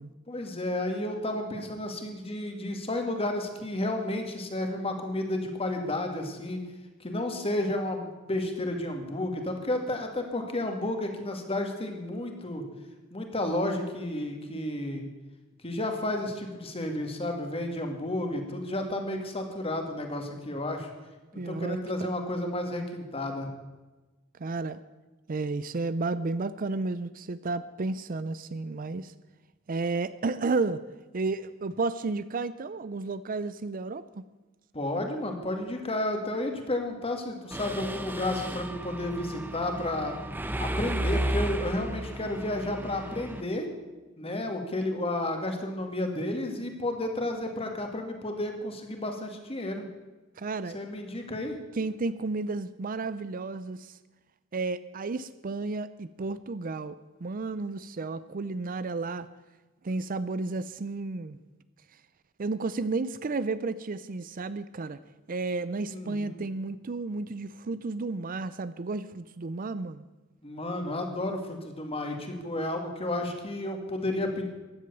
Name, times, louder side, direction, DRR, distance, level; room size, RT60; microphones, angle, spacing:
voice 1, 0.3-6.6 7.0-12.6 13.1-15.0 15.6-20.9 21.3-23.5 34.7-40.1 40.6-43.7 44.2-49.8 50.7-51.6 65.9-66.4 70.4-74.5, left 1 dB, 30° left, 4 dB, 2.3 m, -32 dB
voice 2, 21.4-21.8 24.4-24.8 25.3-29.1 29.7-30.8 31.1-34.2 50.4-50.8 51.7-54.0 54.5-59.3 59.8-61.4 62.4-65.0 65.3-70.0, right 3 dB, 45° right, 15 dB, 0.5 m, -32 dB
Mechanisms, 37.5-43.4, right 1 dB, 10° right, 0.9 m, -33 dB
15.5 x 11.0 x 7.0 m, 1.2 s
head